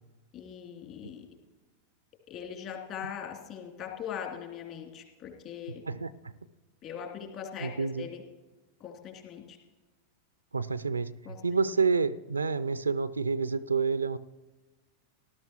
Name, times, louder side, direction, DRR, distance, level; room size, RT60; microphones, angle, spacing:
voice 1, 0.3-1.3 2.3-5.8 6.8-8.2 8.8-9.6 11.2-11.4, left 8 dB, 40° left, 1 dB, 2.7 m, -41 dB
voice 2, 7.6-8.1 10.5-14.2, right 5 dB, 75° right, 16 dB, 0.4 m, -29 dB
18.5 x 12.0 x 3.0 m, 1.2 s
figure-of-eight pair, 90°, 0 cm